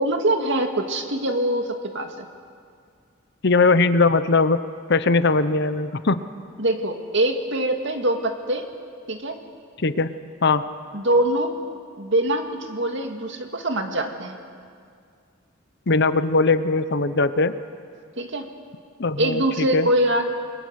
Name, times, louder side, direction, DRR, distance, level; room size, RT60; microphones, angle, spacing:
voice 1, 0.0-2.3 6.6-8.6 9.1-9.4 10.9-11.5 12.0-14.4 18.2-18.5 19.2-20.3, right 1 dB, 60° right, 4 dB, 2.1 m, -23 dB
voice 2, 3.4-4.6 4.9-6.2 9.8-10.1 10.4-10.6 15.9-17.5 19.0-19.4 19.7-19.9, left 3 dB, 55° left, 12 dB, 0.9 m, -19 dB
29.0 x 22.0 x 6.5 m, 2.2 s
head